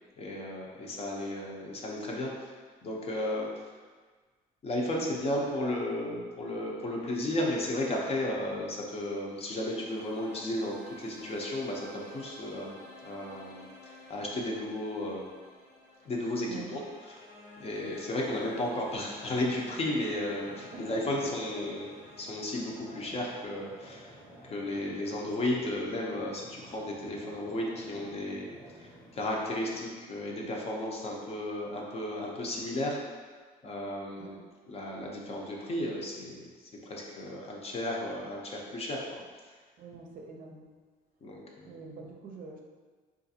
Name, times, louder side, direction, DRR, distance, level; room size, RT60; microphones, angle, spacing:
voice 1, 0.2-3.7 4.6-13.7 14.1-15.3 16.0-16.8 17.6-21.9 22.2-24.1 24.4-28.5 28.8-33.0 33.6-34.4 34.7-39.2 41.2-41.7, left 1 dB, 35° left, -2 dB, 0.6 m, -34 dB
sound 1, 8.9-25.9, left 2 dB, 70° left, 1.0 m, -52 dB
sound 2, 18.2-29.9, equal, 5° left, 0.8 m, -53 dB
voice 2, 20.6-20.9 34.2-34.3 39.8-40.7 41.6-42.6, right 4 dB, 55° right, 0 dB, 0.5 m, -45 dB
3.8 x 2.5 x 2.7 m, 1.5 s
cardioid pair, 110°, 17 cm